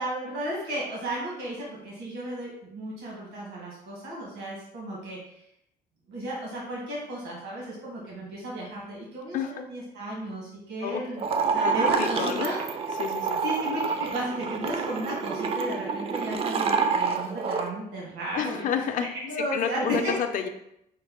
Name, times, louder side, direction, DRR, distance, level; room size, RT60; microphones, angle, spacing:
voice 1, 0.0-5.2 6.1-12.6 13.4-18.6 19.0-20.1, right 1 dB, 85° right, -4 dB, 1.3 m, -34 dB
voice 2, 9.3-9.7 10.8-11.0 11.6-12.6 13.0-13.4 18.3-19.1 19.4-20.5, left 7 dB, 50° left, 6 dB, 0.5 m, -30 dB
sound 1, 11.2-17.7, right 5 dB, 35° right, 0.4 m, -28 dB
5.2 x 2.0 x 3.6 m, 0.78 s
cardioid pair, 110°, 17 cm